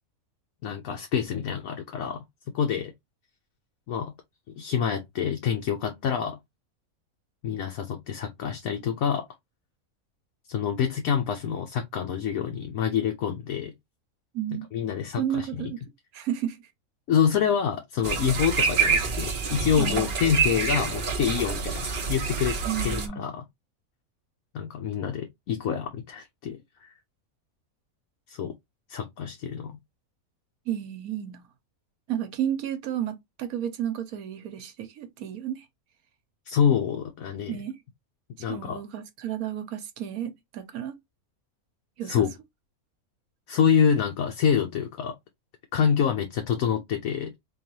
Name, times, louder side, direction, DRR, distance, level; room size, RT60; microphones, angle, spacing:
voice 1, 0.6-2.2 2.5-2.9 3.9-4.1 4.5-6.4 7.4-9.3 10.5-13.7 14.7-15.7 17.1-22.6 22.8-23.4 24.5-26.9 28.3-28.5 28.9-29.8 36.5-37.6 38.4-38.8 42.0-42.3 43.5-45.1 45.7-47.3, left 7 dB, 75° left, 1.1 m, -26 dB
voice 2, 14.3-14.7 15.2-15.8 16.1-16.6 19.7-20.2 22.6-23.3 30.7-31.4 32.1-35.6 37.5-37.8 38.5-40.9 42.0-42.3, right 10 dB, 80° right, 1.3 m, -32 dB
sound 1, 18.0-23.1, right 5 dB, 45° right, 0.9 m, -27 dB
3.9 x 3.0 x 2.9 m
omnidirectional pair, 1.5 m